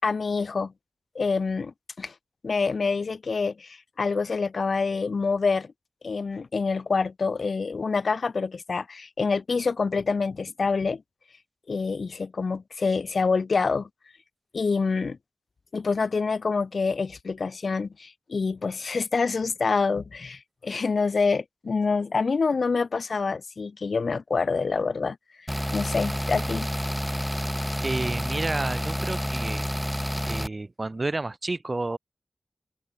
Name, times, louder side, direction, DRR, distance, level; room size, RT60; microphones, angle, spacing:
voice 1, 0.0-0.7 1.1-2.1 2.4-5.7 6.0-11.0 11.7-13.9 14.5-15.2 15.7-26.7, left 4 dB, 80° left, 4.1 m, -26 dB
sound 1, 25.5-30.5, equal, ahead, 1.0 m, -29 dB
voice 2, 27.8-29.7 30.2-32.0, right 2 dB, 45° right, 3.6 m, -30 dB
cardioid pair, 55°, 0 cm